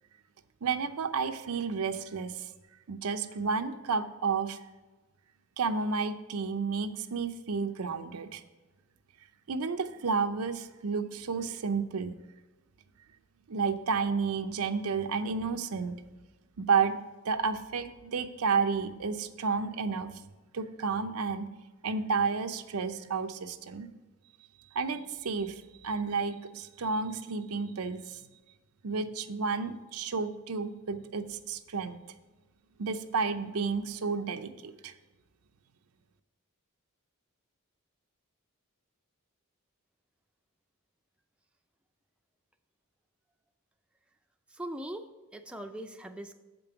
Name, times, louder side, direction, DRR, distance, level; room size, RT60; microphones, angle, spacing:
voice 1, 0.6-2.5 2.9-4.6 5.6-8.4 9.5-12.2 13.5-16.0 16.6-17.0 17.2-20.1 20.5-21.5 21.8-23.9 24.7-28.2 28.8-32.0 32.8-34.9, right 5 dB, 90° right, 8 dB, 0.6 m, -31 dB
voice 2, 44.5-46.3, right 1 dB, 5° right, 5 dB, 0.4 m, -41 dB
7.5 x 5.3 x 5.7 m, 1.2 s
head